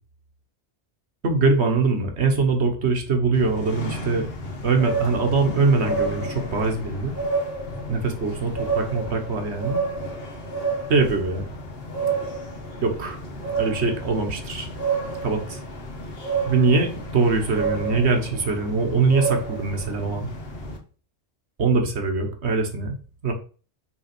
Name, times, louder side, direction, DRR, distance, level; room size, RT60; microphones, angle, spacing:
voice 1, 1.2-4.3 4.6-7.1 7.9-9.8 10.9-11.5 12.8-13.2 13.6-14.7 15.2-15.6 16.5-20.3 21.6-23.0 23.2-23.3, right 4 dB, 70° right, 4 dB, 1.6 m, -22 dB
sound 1, 3.3-20.8, right 3 dB, 60° left, 1.6 m, -30 dB
6.1 x 3.8 x 6.0 m, 0.38 s
omnidirectional pair, 1.2 m